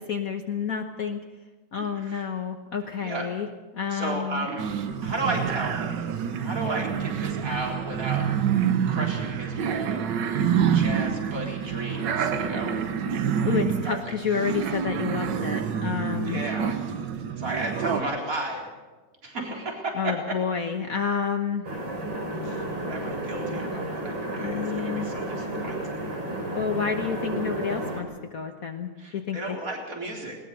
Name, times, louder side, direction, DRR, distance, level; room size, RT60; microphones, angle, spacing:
voice 1, 0.1-1.2 1.7-3.5 3.7-4.5 13.4-16.4 19.9-21.6 24.4-25.1 26.5-29.6, left 6 dB, 50° left, 4 dB, 1.5 m, -29 dB
voice 2, 1.7-2.2 3.0-3.3 3.9-4.7 5.0-6.1 6.4-8.3 8.9-10.1 10.6-12.8 13.8-14.1 16.3-16.8 17.4-18.7 19.2-20.4 22.3-26.0 29.0-30.4, right 2 dB, 45° right, 0 dB, 4.3 m, -33 dB
sound 1, 4.6-18.0, right 8 dB, 70° right, 1.8 m, -27 dB
sound 2, 21.6-28.0, right 1 dB, 90° right, 4.6 m, -32 dB
20.5 x 20.0 x 6.7 m, 1.2 s
omnidirectional pair, 2.0 m